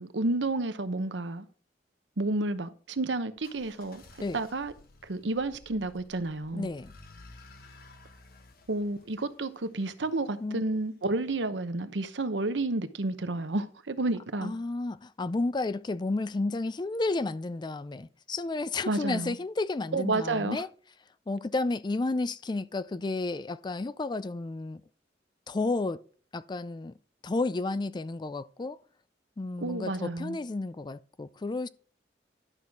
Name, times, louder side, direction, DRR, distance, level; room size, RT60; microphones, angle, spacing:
voice 1, 0.0-1.5 2.2-4.0 4.3-4.7 5.0-6.7 8.7-14.5 18.9-19.4 19.9-20.6 29.6-30.4, right 2 dB, 90° right, 0.9 m, -30 dB
sound 1, 3.4-10.3, left 2 dB, 55° left, 1.4 m, -54 dB
voice 2, 6.5-6.9 10.4-10.6 14.4-20.7 21.3-24.8 25.5-26.0 26.3-26.9 27.2-28.8 29.4-31.7, left 3 dB, 25° left, 0.4 m, -32 dB
11.5 x 6.2 x 3.5 m
head